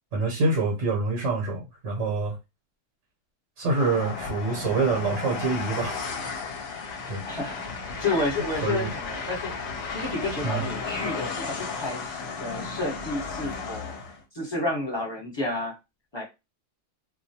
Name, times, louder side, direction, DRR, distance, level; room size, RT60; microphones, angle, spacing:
voice 1, 0.1-2.4 3.6-6.0 6.4-6.5 7.1-7.2 8.6-8.9 10.4-10.7, right 3 dB, 70° right, 1.1 m, -26 dB
Train, 3.7-14.2, left 5 dB, 60° left, 0.8 m, -34 dB
voice 2, 7.3-9.5 9.9-14.0 14.3-15.7 16.1-16.2, left 2 dB, 20° left, 1.0 m, -31 dB
2.3 x 2.2 x 2.7 m
omnidirectional pair, 1.4 m